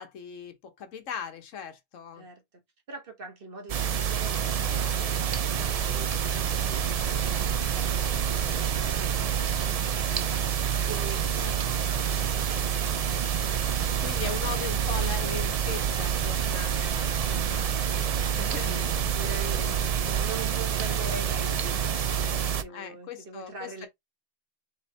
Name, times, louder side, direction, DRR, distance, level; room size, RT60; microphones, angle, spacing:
voice 1, 0.0-2.2 11.4-11.8 14.0-18.7 22.7-23.9, left 7 dB, 85° left, 1.3 m, -39 dB
voice 2, 2.9-10.4 10.9-13.1 18.6-23.9, right 3 dB, 50° right, 1.4 m, -43 dB
sound 1, 3.7-22.6, right 8 dB, 70° right, 0.3 m, -27 dB
4.3 x 3.5 x 3.3 m
omnidirectional pair, 1.3 m